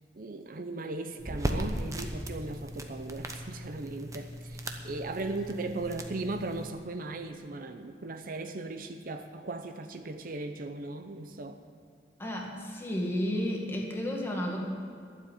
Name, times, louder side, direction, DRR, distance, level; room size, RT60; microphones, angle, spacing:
voice 1, 0.2-11.6, right 2 dB, 50° right, 7 dB, 0.7 m, -37 dB
sound 1, 1.2-6.7, equal, 20° right, 0.9 m, -37 dB
voice 2, 12.2-14.6, left 1 dB, 15° left, -1 dB, 1.9 m, -32 dB
12.5 x 7.5 x 9.2 m, 2.3 s
head